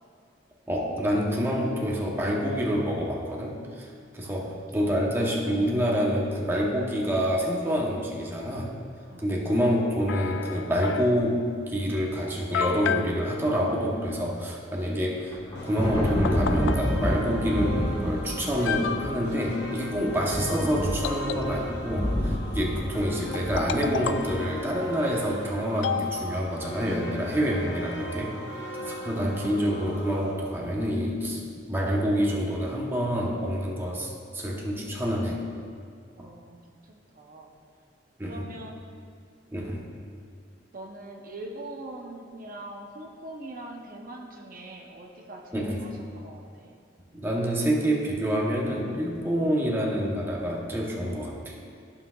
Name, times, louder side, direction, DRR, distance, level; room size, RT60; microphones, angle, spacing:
voice 1, 0.7-3.9 4.1-8.7 9.2-15.4 15.6-28.3 28.9-35.4 36.2-36.3 38.2-38.5 39.5-39.8 45.5-45.8 47.1-51.6, equal, 15° right, -3 dB, 0.9 m, -27 dB
voice 2, 4.2-4.9 9.1-9.3 28.8-29.0 36.2-36.6 36.8-37.5 38.2-38.8 40.7-46.7, right 2 dB, 50° right, 0 dB, 0.8 m, -43 dB
sound 1, 10.1-11.3 12.0-12.1 12.5-13.1 15.7-15.8 16.2-16.8 17.9-18.0 18.5-19.3 21.0-21.9 23.3-24.4 25.8-26.7, left 7 dB, 85° left, 0.3 m, -31 dB
Thunder, 15.2-24.6, equal, 25° left, 1.2 m, -29 dB
sound 2, 15.5-30.3, equal, 70° left, 0.9 m, -39 dB
14.0 x 5.7 x 2.4 m, 2.2 s
head